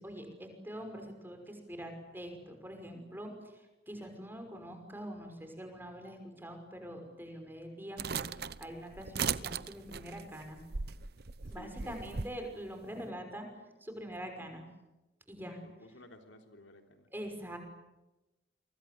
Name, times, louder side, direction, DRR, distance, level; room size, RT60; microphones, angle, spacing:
voice 1, 0.0-10.6 11.5-13.5 13.8-14.6 15.3-15.6 17.1-17.6, equal, 10° right, 5 dB, 5.8 m, -44 dB
sound 1, 8.0-12.3, right 6 dB, 55° right, 0.9 m, -38 dB
voice 2, 11.5-12.1 15.5-17.1, left 1 dB, 85° left, 5 dB, 3.5 m, -55 dB
29.5 x 24.5 x 7.8 m, 1.0 s
head